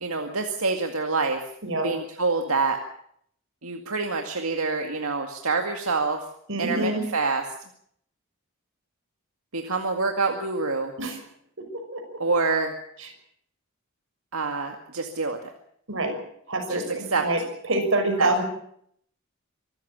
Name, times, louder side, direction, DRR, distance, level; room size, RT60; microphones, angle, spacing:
voice 1, 0.0-1.4 1.8-2.8 3.6-6.2 6.6-7.4 9.5-10.9 12.2-12.7 14.3-15.4 16.7-17.2 18.2-18.3, right 4 dB, 90° right, 4 dB, 2.1 m, -26 dB
voice 2, 6.5-7.0 11.0-11.2 11.7-12.2 15.9-16.2 16.5-18.4, right 2 dB, 65° right, 5 dB, 6.0 m, -26 dB
24.5 x 14.0 x 8.8 m, 0.68 s
head